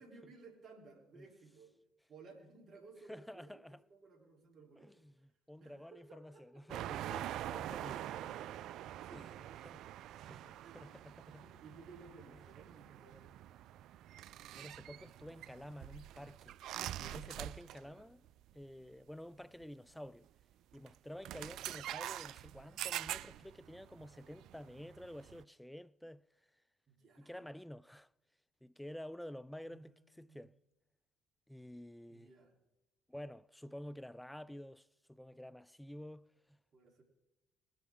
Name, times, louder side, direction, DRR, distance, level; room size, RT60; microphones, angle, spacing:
voice 1, 0.0-1.7 2.1-5.0 5.6-7.0 9.0-9.7 10.5-13.4 17.8-18.1 26.9-27.5 29.6-30.5 32.1-32.6 36.7-37.0, right 4 dB, 50° right, 3.6 m, -59 dB
voice 2, 3.1-3.8 4.8-8.0 9.1-9.3 9.6-9.8 10.3-11.4 12.3-12.4 14.5-16.6 17.0-18.2 18.5-20.3 20.7-26.2 27.2-28.1 28.6-30.5 31.5-32.3 33.1-36.6, equal, 5° left, 0.4 m, -50 dB
sound 1, 6.7-18.0 18.2-18.5 19.6-19.7 20.7-20.9 21.2-25.4, right 12 dB, 65° right, 0.3 m, -45 dB
20.5 x 10.5 x 3.7 m
hypercardioid pair, 60°, 0 cm